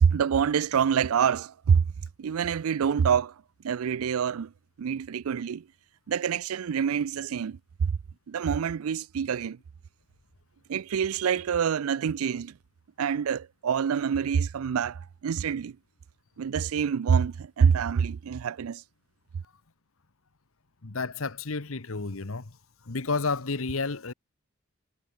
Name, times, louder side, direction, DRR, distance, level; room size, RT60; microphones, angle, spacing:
voice 1, 0.0-1.8 2.2-3.3 3.6-4.5 4.8-5.6 6.1-8.0 8.3-9.6 10.7-12.5 13.0-15.8 16.4-18.8, right 7 dB, 90° right, 0.4 m, -26 dB
voice 2, 20.8-22.5 22.9-24.1, left 4 dB, 80° left, 1.2 m, -31 dB
head